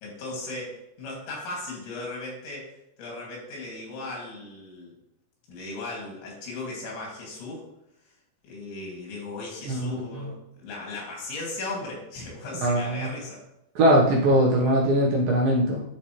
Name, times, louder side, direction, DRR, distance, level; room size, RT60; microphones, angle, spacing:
voice 1, 0.0-2.7 3.0-4.9 5.5-7.6 8.4-13.4, left 2 dB, 85° left, -3 dB, 4.6 m, -37 dB
voice 2, 9.7-10.3 12.6-13.1 13.8-15.8, right 1 dB, 65° right, -4 dB, 2.4 m, -21 dB
12.0 x 4.2 x 3.1 m, 0.83 s
omnidirectional pair, 5.1 m